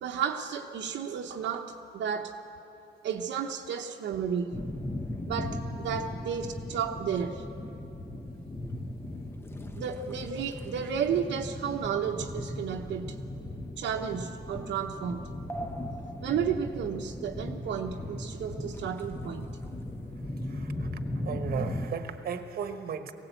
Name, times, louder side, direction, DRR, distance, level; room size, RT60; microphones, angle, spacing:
voice 1, 0.0-2.4 3.0-4.6 5.2-7.4 9.8-13.2 13.8-15.3 16.2-19.6, right 7 dB, 70° right, 1 dB, 1.0 m, -32 dB
sound 1, 4.5-21.9, left 1 dB, 10° left, 0.9 m, -37 dB
voice 2, 20.4-23.1, right 7 dB, 55° right, 8 dB, 1.2 m, -36 dB
20.5 x 18.0 x 8.2 m, 2.9 s
cardioid pair, 160°, 19 cm